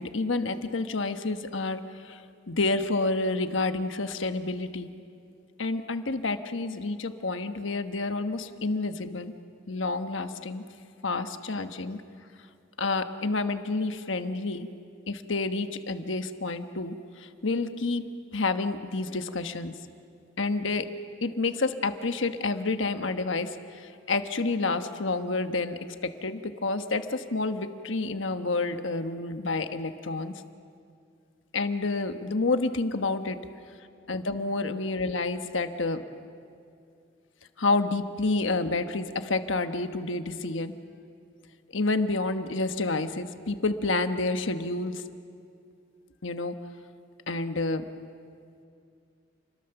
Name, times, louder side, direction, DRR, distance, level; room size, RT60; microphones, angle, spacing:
voice 1, 0.0-4.9 5.6-9.3 9.7-10.6 11.0-12.0 12.8-14.7 15.1-18.1 18.3-19.7 20.4-20.9 21.2-30.4 31.5-33.4 34.1-36.0 37.6-40.7 41.7-45.0 46.2-46.5 47.3-47.8, left 3 dB, 75° left, 8 dB, 1.2 m, -29 dB
29.0 x 21.5 x 7.0 m, 2.5 s
head